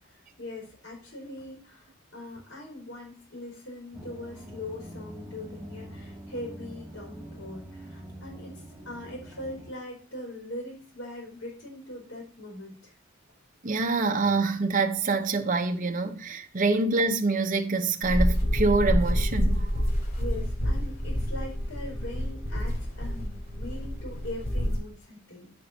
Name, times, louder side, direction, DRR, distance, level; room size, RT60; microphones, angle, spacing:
voice 1, 0.0-12.9 20.2-25.5, left 1 dB, 75° left, 4.2 m, -41 dB
sound 1, 3.9-9.7, right 1 dB, 10° right, 2.1 m, -44 dB
voice 2, 13.6-19.7, right 3 dB, 40° right, 0.7 m, -26 dB
sound 2, 18.0-24.8, equal, 50° left, 3.8 m, -27 dB
15.5 x 5.3 x 2.7 m
head